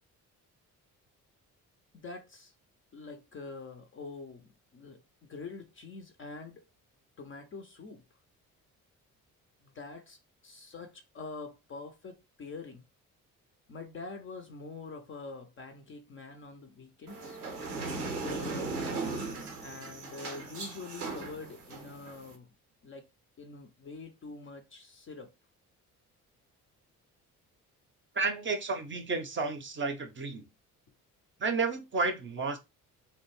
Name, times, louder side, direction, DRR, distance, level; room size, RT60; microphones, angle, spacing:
voice 1, 1.9-2.5 2.9-6.6 7.2-8.0 9.6-12.8 13.7-17.4 18.1-19.3 19.6-22.5 22.8-23.1 23.4-25.3, left 4 dB, 30° left, 0.5 m, -45 dB
sound 1, 17.1-22.3, right 3 dB, 90° right, 0.6 m, -38 dB
voice 2, 28.1-30.4 31.4-32.6, right 4 dB, 25° right, 0.6 m, -31 dB
2.5 x 2.1 x 3.0 m
figure-of-eight pair, 45°, 45 cm